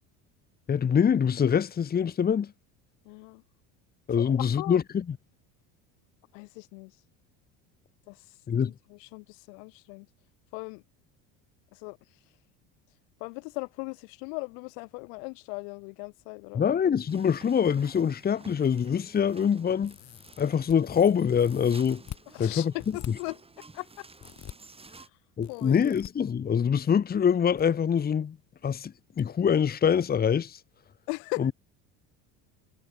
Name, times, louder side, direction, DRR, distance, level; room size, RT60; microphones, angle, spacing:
voice 1, 0.7-2.5 4.1-5.2 8.5-8.7 16.5-20.0 20.4-22.0 22.4-22.7 25.4-28.4 28.6-30.6 31.4-31.5, left 7 dB, 25° left, 1.1 m, -24 dB
voice 2, 3.0-3.4 4.2-4.8 6.3-6.9 8.1-8.3 8.7-10.1 10.5-10.8 11.7-12.0 13.2-16.6 22.3-23.4 23.7-24.1 24.9-25.0 25.5-26.0 31.1-31.5, left 40 dB or more, 80° left, 1.6 m, -39 dB
sound 1, 17.1-25.1, right 3 dB, 15° right, 4.9 m, -52 dB
sound 2, 19.8-20.8 21.3-22.2 22.8-23.1 24.2-24.5 25.4-26.1 27.2-27.6 27.9-28.0 29.2-29.3 29.7-29.8, left 12 dB, 50° left, 4.5 m, -44 dB
supercardioid pair, 100°, 37 cm